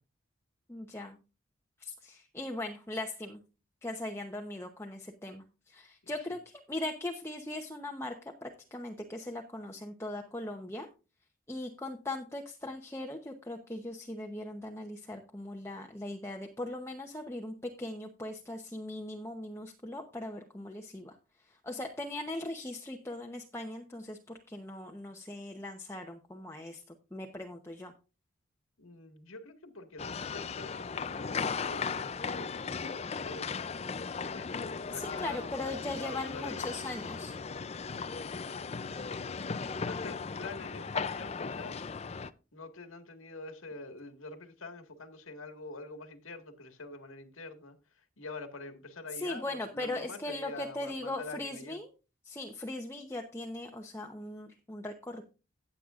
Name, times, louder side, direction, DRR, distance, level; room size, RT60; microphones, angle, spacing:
voice 1, 0.7-1.2 1.8-3.4 3.8-10.9 11.5-21.2 21.5-26.8 27.1-27.9 34.9-37.4 49.1-51.9 52.2-55.2, left 2 dB, 10° left, 0.8 m, -39 dB
voice 2, 28.8-33.7 34.3-36.9 38.7-41.9 42.5-47.8 48.2-51.8, left 3 dB, 80° left, 1.8 m, -46 dB
sound 1, 30.0-42.3, left 5 dB, 30° left, 0.4 m, -37 dB
16.0 x 8.6 x 2.5 m
head